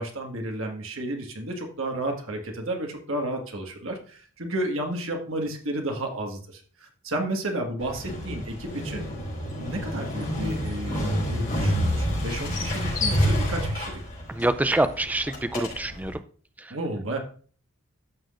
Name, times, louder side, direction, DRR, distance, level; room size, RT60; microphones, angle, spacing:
voice 1, 0.0-9.0 9.6-14.0 16.7-17.2, right 1 dB, 65° right, 2 dB, 1.6 m, -32 dB
Motorcycle, 7.8-16.1, equal, 40° left, 4.4 m, -28 dB
voice 2, 14.4-16.1, right 1 dB, 5° right, 11 dB, 0.4 m, -25 dB
14.0 x 6.0 x 2.5 m, 0.44 s
head